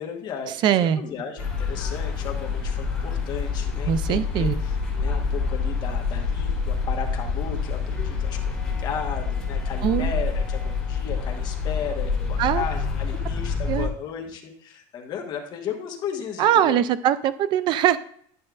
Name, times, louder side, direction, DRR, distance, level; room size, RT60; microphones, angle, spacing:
voice 1, 0.0-8.5 8.8-16.8, left 7 dB, 30° left, 1 dB, 1.2 m, -35 dB
voice 2, 0.6-1.0 3.9-4.5 9.8-10.1 12.4-12.6 13.7-13.9 16.4-18.0, right 10 dB, 35° right, 14 dB, 0.4 m, -21 dB
sound 1, 1.4-13.9, left 5 dB, 5° left, 1.9 m, -27 dB
11.0 x 6.3 x 2.4 m, 0.62 s
cardioid pair, 175°, 14 cm